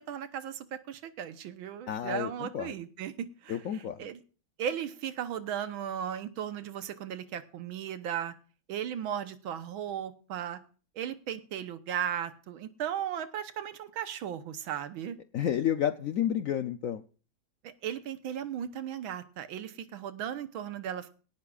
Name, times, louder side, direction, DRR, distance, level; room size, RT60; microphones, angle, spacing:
voice 1, 0.0-4.2 4.6-8.3 8.7-10.6 11.0-15.2 17.6-21.1, right 9 dB, 80° right, 11 dB, 1.8 m, -36 dB
voice 2, 1.9-2.7 3.5-4.0 15.3-17.0, left 10 dB, 80° left, 10 dB, 0.7 m, -30 dB
18.0 x 12.0 x 2.5 m, 0.37 s
omnidirectional pair, 2.2 m